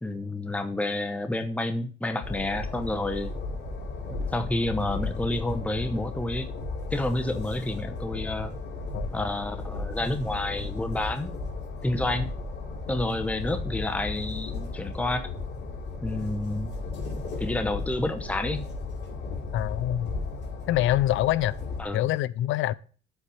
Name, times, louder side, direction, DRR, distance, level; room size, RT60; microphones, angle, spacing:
voice 1, 0.0-3.3 4.3-6.5 6.9-8.5 9.1-11.3 11.8-12.3 12.9-15.3 16.0-16.7 17.1-18.6 21.8-22.0, left 2 dB, 5° left, 0.9 m, -29 dB
Train, 2.2-21.8, left 3 dB, 60° left, 2.8 m, -35 dB
voice 2, 19.5-20.1 20.7-21.5 21.9-22.7, left 13 dB, 80° left, 0.4 m, -25 dB
8.1 x 4.2 x 7.0 m
cardioid pair, 90°, 20 cm